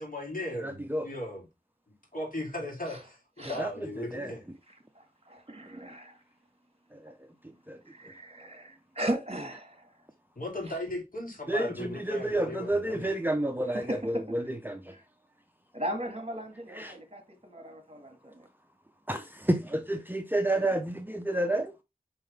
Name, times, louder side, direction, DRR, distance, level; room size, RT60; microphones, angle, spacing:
voice 1, 0.0-1.5 2.1-4.4 10.3-13.1, left 1 dB, 60° left, 3.3 m, -37 dB
voice 2, 0.6-1.0 3.6-3.7 4.1-4.3 7.7-7.8 11.5-14.2 14.7-14.8 16.8-16.9 19.1-21.7, right 1 dB, 10° right, 0.7 m, -29 dB
voice 3, 4.7-6.2 7.9-9.9 10.6-10.8 13.0-13.1 13.6-14.5 14.9-15.0 15.7-18.5, right 1 dB, 40° right, 1.9 m, -37 dB
5.5 x 5.3 x 3.4 m
wide cardioid pair, 50°, 16 cm